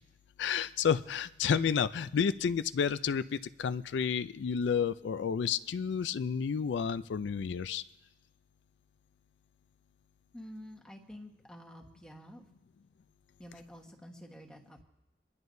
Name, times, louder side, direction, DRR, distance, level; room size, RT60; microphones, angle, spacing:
voice 1, 0.4-7.8, left 7 dB, 85° left, 14 dB, 0.4 m, -31 dB
voice 2, 10.3-12.5 13.4-14.8, equal, 5° left, 0 dB, 1.3 m, -49 dB
27.5 x 11.0 x 2.7 m, 0.99 s
head